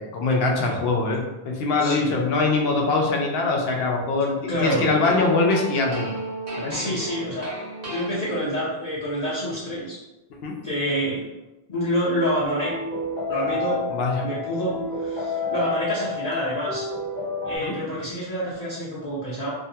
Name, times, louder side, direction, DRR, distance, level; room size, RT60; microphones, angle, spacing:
voice 1, 0.0-6.1 6.6-6.8 10.4-10.5 13.9-14.3 17.6-17.7, left 3 dB, 75° left, 0 dB, 0.8 m, -23 dB
voice 2, 1.8-2.1 4.5-4.8 6.7-7.5 7.8-10.0 10.6-11.2 11.7-12.7 13.3-13.8 14.2-16.9 17.5-19.5, equal, 45° left, -11 dB, 0.7 m, -27 dB
sound 1, 4.6-8.7, right 1 dB, 65° right, 1.1 m, -33 dB
sound 2, 12.4-17.6, left 3 dB, 10° left, 0.6 m, -30 dB
2.6 x 2.2 x 2.7 m, 0.99 s
omnidirectional pair, 1.0 m